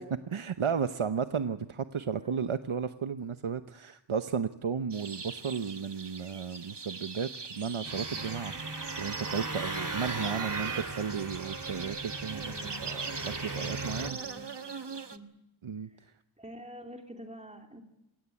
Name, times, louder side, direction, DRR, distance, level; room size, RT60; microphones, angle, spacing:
voice 1, 0.3-12.5 12.8-14.2 15.6-16.1, right 6 dB, 80° right, 9 dB, 0.9 m, -34 dB
sound 1, 4.9-15.2, right 5 dB, 55° right, 1.4 m, -41 dB
sound 2, 7.8-14.1, right 2 dB, 40° right, 2.3 m, -38 dB
voice 2, 10.0-10.9 12.4-12.8 13.7-15.2 15.8-16.0 16.4-17.8, right 1 dB, 15° right, 2 dB, 2.8 m, -48 dB
27.5 x 17.0 x 8.5 m, 0.89 s
wide cardioid pair, 45°, 48 cm